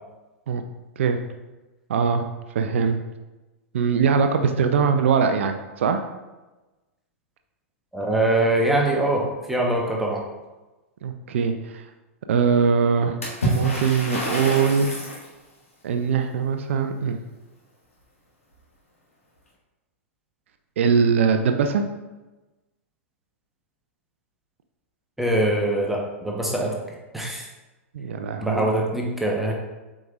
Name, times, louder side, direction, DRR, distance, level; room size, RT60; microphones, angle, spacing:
voice 1, 1.9-2.2 2.5-3.0 3.7-6.0 11.0-11.8 12.3-13.2 13.4-14.9 15.8-17.2 20.8-21.8 27.9-28.7, right 6 dB, 60° right, 7 dB, 0.5 m, -21 dB
voice 2, 7.9-10.2 25.2-26.7 27.1-27.5 28.4-29.5, right 1 dB, 5° right, -2 dB, 1.0 m, -23 dB
Water / Splash splatter, 13.2-15.3, equal, 85° left, 2.0 m, -27 dB
7.7 x 5.0 x 2.4 m, 1.1 s
figure-of-eight pair, 100°, 7 cm